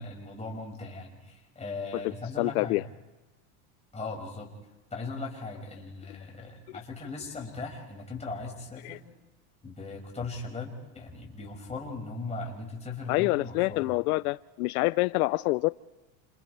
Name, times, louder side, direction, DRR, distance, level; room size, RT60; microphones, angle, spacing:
voice 1, 0.0-2.8 3.9-4.5 4.9-9.0 9.6-13.9, left 3 dB, 15° left, 5.6 m, -38 dB
voice 2, 2.4-2.8 8.8-9.0 13.1-15.7, left 22 dB, 85° left, 0.6 m, -26 dB
29.5 x 27.0 x 3.3 m
supercardioid pair, 130°, 43 cm